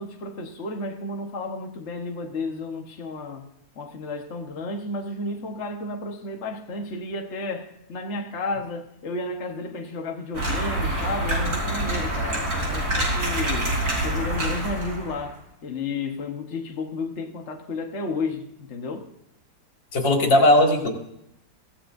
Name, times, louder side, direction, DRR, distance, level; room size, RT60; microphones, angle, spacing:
voice 1, 0.0-3.5 3.7-19.1, left 3 dB, 45° left, 1.4 m, -32 dB
sound 1, 10.3-15.3, right 1 dB, 55° right, 5.1 m, -26 dB
voice 2, 19.9-20.9, left 1 dB, 80° left, 3.0 m, -18 dB
24.0 x 16.0 x 2.6 m
omnidirectional pair, 2.0 m